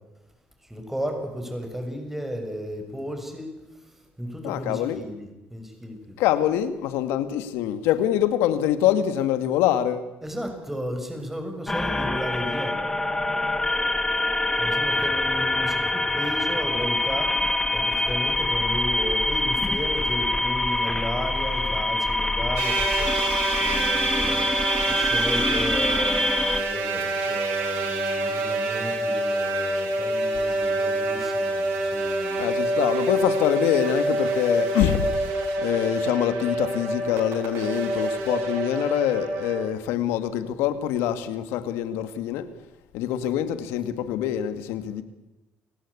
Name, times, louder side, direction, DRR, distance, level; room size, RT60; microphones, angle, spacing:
voice 1, 0.7-3.5 3.8-6.2 10.2-12.8 14.6-24.5 24.9-32.4, equal, 5° right, 6.7 m, -34 dB
voice 2, 4.4-5.0 6.2-10.1 32.4-35.3 35.6-42.5 42.9-45.0, left 11 dB, 85° left, 2.1 m, -25 dB
sound 1, 11.7-26.6, left 2 dB, 15° left, 2.2 m, -25 dB
sound 2, 22.6-39.6, right 2 dB, 80° right, 5.9 m, -27 dB
29.5 x 17.5 x 8.5 m
cardioid pair, 90°, 4 cm